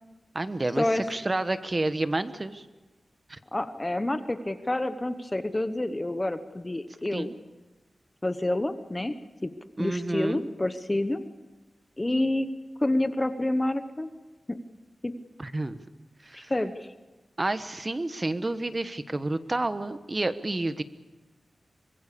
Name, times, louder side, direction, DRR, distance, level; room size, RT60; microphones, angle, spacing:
voice 1, 0.3-2.7 3.3-3.4 7.1-7.3 9.8-10.5 15.4-15.8 16.2-16.5 17.4-20.8, right 2 dB, 30° right, 11 dB, 1.2 m, -30 dB
voice 2, 3.5-7.3 8.2-9.1 9.4-9.5 9.8-11.2 12.0-12.5 12.8-14.1 14.5-14.6 15.0-15.1 16.3-16.9, left 1 dB, 20° left, 10 dB, 1.0 m, -28 dB
24.5 x 21.5 x 6.9 m, 1.2 s
wide cardioid pair, 105°, 0 cm